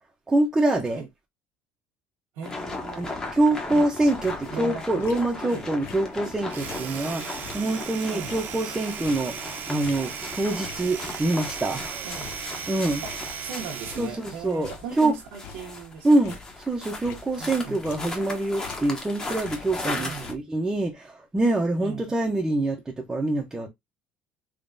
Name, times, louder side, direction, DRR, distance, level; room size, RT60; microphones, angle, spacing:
voice 1, 0.3-1.0 2.9-3.1 3.3-12.1 12.7-13.0 14.0-14.7 15.0-15.1 16.0-16.4 16.7-23.7, right 2 dB, 10° right, 0.6 m, -25 dB
voice 2, 2.3-3.2 3.5-3.8 4.5-5.0 5.4-5.7 8.1-8.4 12.0-12.4 13.0-16.4 17.4-17.8 19.9-20.4 21.8-22.1, right 6 dB, 80° right, 0.9 m, -38 dB
sound 1, 2.4-20.3, left 2 dB, 15° left, 0.9 m, -37 dB
sound 2, 3.6-5.5 5.8-11.1 11.4-13.5 13.8-14.3 14.6-18.3 18.6-20.4, left 6 dB, 70° left, 0.6 m, -46 dB
Domestic sounds home sounds, 6.4-14.2, right 7 dB, 50° right, 0.7 m, -36 dB
3.6 x 3.0 x 2.5 m
cardioid pair, 145°, 4 cm